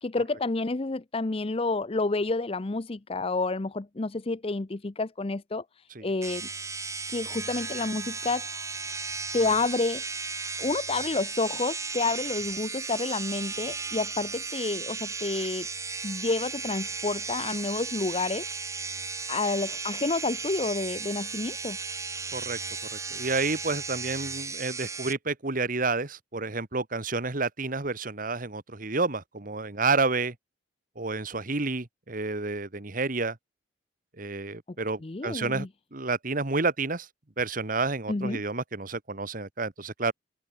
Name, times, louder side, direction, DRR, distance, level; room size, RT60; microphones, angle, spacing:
voice 1, 0.0-6.5 7.1-8.5 9.3-10.0 10.6-15.7 16.0-18.4 19.3-21.8 35.0-35.7 38.1-38.4, left 3 dB, 30° left, 0.6 m, -29 dB
sound 1, 6.2-25.1, right 4 dB, 15° right, 2.2 m, -35 dB
voice 2, 22.9-30.4 31.0-33.4 34.2-35.7 35.9-37.1 37.4-40.1, right 3 dB, 45° right, 1.6 m, -30 dB
head